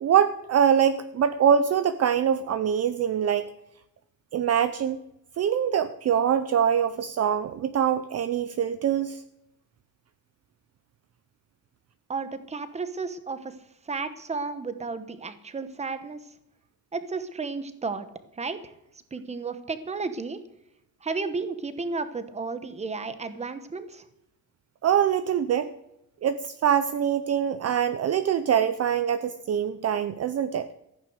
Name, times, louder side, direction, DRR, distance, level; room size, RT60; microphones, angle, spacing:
voice 1, 0.0-3.5 4.3-5.0 5.4-9.2 24.8-25.7 26.2-30.7, right 8 dB, 40° right, 12 dB, 0.6 m, -24 dB
voice 2, 12.1-13.6 13.9-16.2 16.9-18.1 18.4-18.7 19.1-20.4 21.0-24.0, right 4 dB, 15° right, 11 dB, 1.0 m, -33 dB
14.5 x 9.6 x 6.5 m, 0.82 s
cardioid pair, 170°, 38 cm